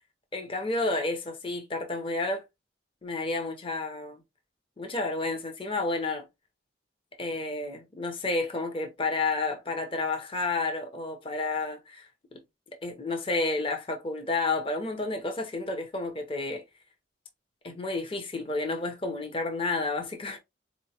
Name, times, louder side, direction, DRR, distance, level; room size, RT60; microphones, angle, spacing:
voice 1, 0.3-2.4 3.0-4.2 4.8-6.3 7.2-12.4 12.8-16.6 17.6-20.4, left 3 dB, 30° left, 0.6 m, -31 dB
4.0 x 2.9 x 2.7 m
head